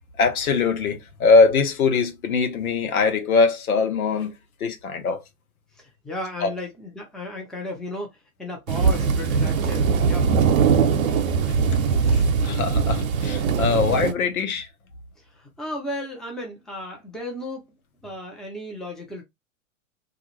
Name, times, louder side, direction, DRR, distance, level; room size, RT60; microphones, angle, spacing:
voice 1, 0.2-4.3 4.6-5.2 6.4-6.5 11.5-11.6 12.1-14.7, left 4 dB, 80° left, 0.9 m, -22 dB
voice 2, 6.0-10.3 15.4-17.6 18.0-19.2, left 1 dB, ahead, 0.7 m, -34 dB
sound 1, 8.7-14.1, right 5 dB, 70° right, 0.7 m, -21 dB
2.4 x 2.4 x 3.0 m
hypercardioid pair, 110°, 42 cm